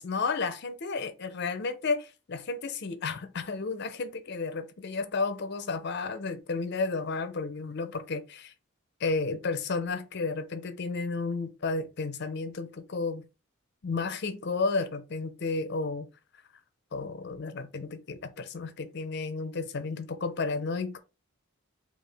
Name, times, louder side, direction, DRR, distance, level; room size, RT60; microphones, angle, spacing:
voice 1, 0.0-8.5 9.0-13.3 13.8-16.1 16.9-21.0, left 4 dB, 50° left, 0.5 m, -32 dB
4.8 x 2.4 x 3.3 m
head